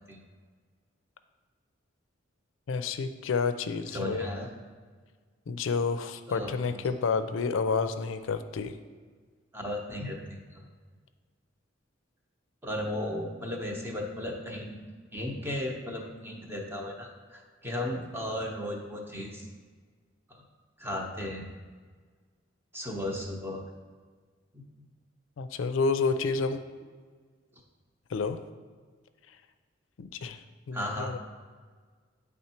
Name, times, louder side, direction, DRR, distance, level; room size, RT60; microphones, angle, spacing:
voice 1, 2.7-4.3 5.5-8.7 25.4-26.6 28.1-28.4 30.0-31.2, left 4 dB, 85° left, 10 dB, 0.4 m, -30 dB
voice 2, 3.9-4.5 6.3-6.6 9.5-10.6 12.6-14.8 15.1-19.5 20.3-20.4 20.8-21.5 22.7-23.6 24.5-24.6 30.7-31.1, left 1 dB, 10° right, 0 dB, 0.8 m, -35 dB
8.7 x 3.5 x 4.3 m, 1.5 s
head